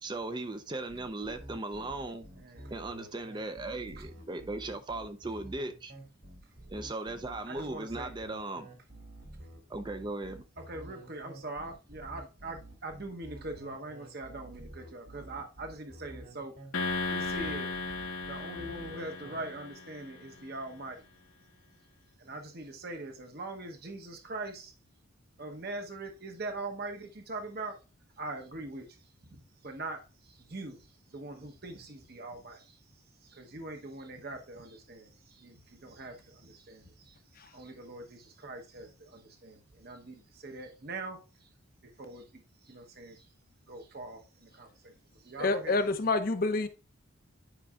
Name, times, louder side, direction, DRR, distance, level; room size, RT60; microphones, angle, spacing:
voice 1, 0.0-2.3 2.7-5.9 6.7-8.7 9.7-10.4, right 2 dB, 20° right, 0.5 m, -37 dB
sound 1, 0.9-19.4, right 1 dB, 65° right, 2.6 m, -49 dB
voice 2, 7.5-8.1 10.7-16.5 17.1-17.7 18.3-21.0 22.3-24.7 25.4-27.7 28.2-28.8 29.3-29.4 29.6-30.0 30.5-30.8 31.1-32.6 33.3-35.1 35.4-35.5 35.8-36.2 36.4-36.8 37.5-40.2 40.4-41.2 42.0-42.2 42.7-43.2 43.7-44.2 44.5-44.7 45.3-45.8, right 2 dB, 50° right, 0.9 m, -41 dB
sound 2, 16.7-20.2, left 3 dB, 80° left, 1.2 m, -36 dB
voice 3, 45.4-46.7, left 3 dB, 45° left, 0.6 m, -28 dB
10.0 x 5.3 x 2.4 m
head